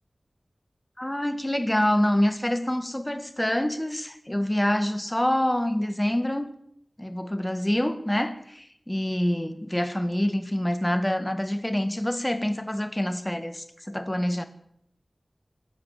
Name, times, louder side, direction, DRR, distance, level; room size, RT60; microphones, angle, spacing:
voice 1, 1.0-6.5 7.0-14.5, left 1 dB, 15° left, 1.6 m, -26 dB
14.0 x 13.0 x 7.6 m
wide cardioid pair, 70°, 0 cm